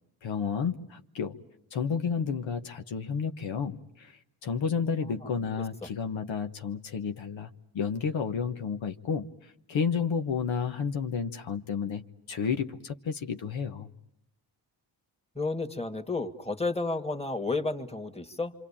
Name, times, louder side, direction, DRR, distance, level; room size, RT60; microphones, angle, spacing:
voice 1, 0.2-1.4 1.7-12.0 12.3-13.9, left 6 dB, 75° left, 6 dB, 1.2 m, -31 dB
voice 2, 15.4-18.5, left 3 dB, 15° left, 8 dB, 2.1 m, -31 dB
27.0 x 25.0 x 8.7 m, 0.74 s
cardioid pair, 55°, 46 cm